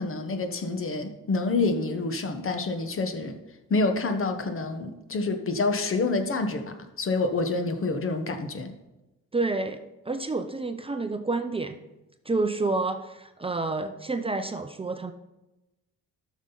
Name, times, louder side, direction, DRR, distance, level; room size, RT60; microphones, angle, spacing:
voice 1, 0.0-3.4 3.7-8.7, left 3 dB, 45° left, 7 dB, 1.2 m, -27 dB
voice 2, 9.3-9.8 10.1-11.8 12.3-15.1, right 3 dB, 20° right, 7 dB, 0.6 m, -29 dB
12.5 x 6.2 x 4.0 m, 1.0 s
cardioid pair, 90°, 30 cm